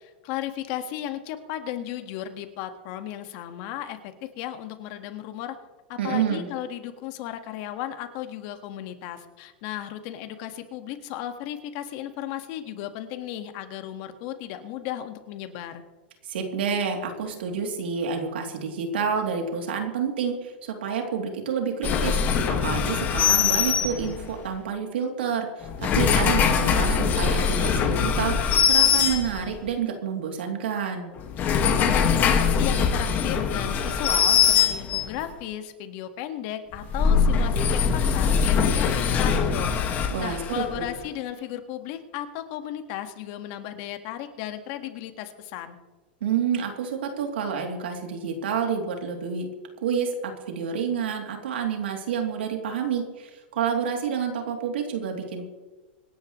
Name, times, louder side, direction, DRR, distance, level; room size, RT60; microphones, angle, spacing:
voice 1, 0.0-5.5 5.9-15.8 31.4-45.8, left 11 dB, 50° left, 8 dB, 1.7 m, -35 dB
voice 2, 6.0-6.5 16.2-31.1 40.1-40.9 46.2-49.5 49.8-55.4, right 7 dB, 80° right, 3 dB, 3.0 m, -29 dB
sound 1, 21.8-24.4 25.6-29.7 31.2-35.2 36.7-40.9, left 6 dB, 30° left, 1.8 m, -22 dB
25.5 x 10.5 x 3.2 m, 1.2 s
supercardioid pair, 130°, 6 cm